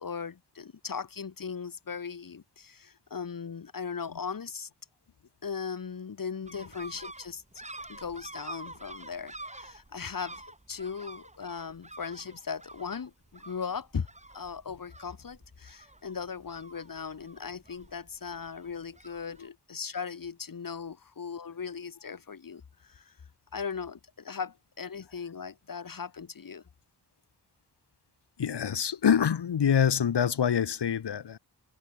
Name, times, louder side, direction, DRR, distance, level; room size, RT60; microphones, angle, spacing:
voice 1, 0.0-4.7 5.4-7.4 7.9-14.1 14.3-23.1 23.5-26.6, left 6 dB, 55° left, 1.7 m, -38 dB
sound 1, 6.5-19.5, right 2 dB, 15° right, 3.5 m, -48 dB
voice 2, 28.4-31.4, left 8 dB, 80° left, 1.6 m, -25 dB
wide cardioid pair, 115°, 41 cm